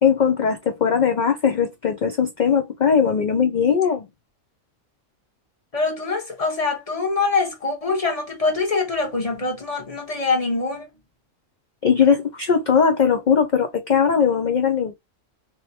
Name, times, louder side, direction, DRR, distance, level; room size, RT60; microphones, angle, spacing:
voice 1, 0.0-4.1 11.8-14.9, left 7 dB, 75° left, 0.4 m, -19 dB
voice 2, 5.7-10.9, left 3 dB, 30° left, 1.0 m, -24 dB
3.1 x 2.8 x 2.7 m
omnidirectional pair, 1.4 m